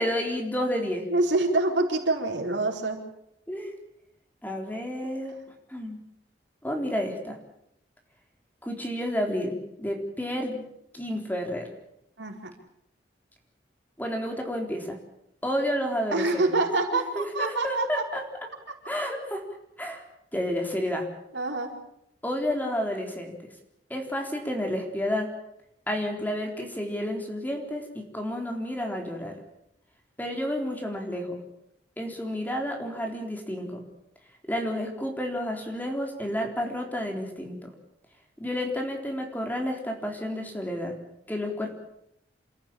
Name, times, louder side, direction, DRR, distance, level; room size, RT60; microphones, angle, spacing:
voice 1, 0.0-1.1 3.5-3.7 4.4-5.3 5.7-6.0 6.6-7.4 8.6-10.7 10.9-11.7 14.0-15.0 15.4-16.5 17.1-18.2 18.9-19.4 19.8-20.0 20.3-21.1 22.2-23.3 23.9-25.3 25.9-29.3 30.2-31.4 32.0-33.8 34.5-37.7 38.4-40.9 41.3-41.8, equal, 10° left, 2 dB, 4.0 m, -30 dB
voice 2, 1.1-3.0 5.0-5.1 12.2-12.5 16.1-18.0 21.3-21.7, right 2 dB, 85° right, 2 dB, 4.6 m, -26 dB
28.5 x 14.5 x 8.8 m, 0.79 s
head